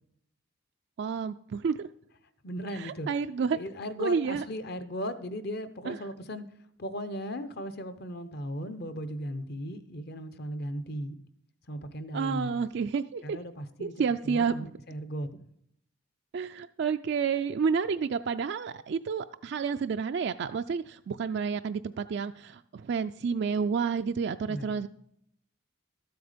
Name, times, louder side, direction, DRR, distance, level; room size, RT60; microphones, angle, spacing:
voice 1, 1.0-1.9 2.7-3.6 4.0-4.4 5.9-6.0 12.1-13.4 13.8-14.5 16.3-24.9, right 6 dB, 55° right, 0.3 m, -30 dB
voice 2, 2.4-3.1 3.5-6.4 6.8-11.2 11.7-12.6 13.2-13.9 14.2-15.4 24.4-24.8, equal, 50° left, 0.8 m, -37 dB
13.0 x 7.9 x 5.1 m
head